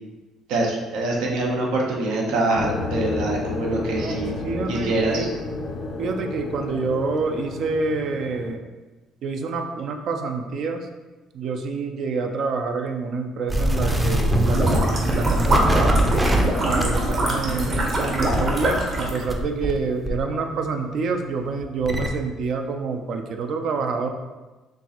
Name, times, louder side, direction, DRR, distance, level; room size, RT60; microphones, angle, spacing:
voice 1, 0.5-4.3 4.7-5.3, right 2 dB, 85° right, -1 dB, 0.8 m, -24 dB
sound 1, 2.5-8.6, left 3 dB, 50° left, 0.5 m, -31 dB
voice 2, 4.4-5.3 6.0-8.7 9.2-10.9 11.3-16.0 16.6-24.1, right 4 dB, 60° right, 5 dB, 0.5 m, -27 dB
sound 2, 13.5-19.8 20.1-22.1, equal, 10° right, 0.5 m, -24 dB
sound 3, 14.4-19.3, right 1 dB, 45° right, 1.0 m, -23 dB
4.4 x 3.1 x 2.9 m, 1.2 s
cardioid pair, 95°, 0 cm